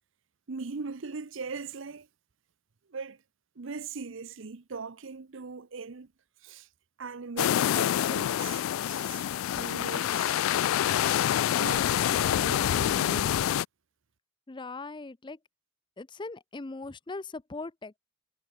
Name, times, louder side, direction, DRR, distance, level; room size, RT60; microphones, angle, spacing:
voice 1, 0.5-2.1 2.9-3.2 3.6-6.1 6.4-6.7 7.0-10.6 11.4-13.4, right 4 dB, 65° right, 0.7 m, -40 dB
sound 1, 7.4-13.7, left 11 dB, 85° left, 0.3 m, -26 dB
voice 2, 14.5-15.4 16.0-18.0, left 3 dB, 25° left, 0.6 m, -40 dB
head